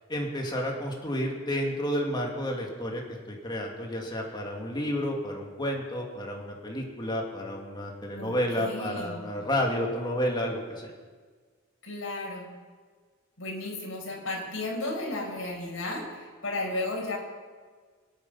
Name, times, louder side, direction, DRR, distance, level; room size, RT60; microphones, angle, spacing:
voice 1, 0.1-3.0 3.3-10.9, equal, 20° left, 0 dB, 2.6 m, -31 dB
voice 2, 8.1-9.2 11.8-12.5 13.4-17.2, left 2 dB, 75° left, -3 dB, 5.3 m, -34 dB
25.5 x 8.9 x 5.8 m, 1.5 s
head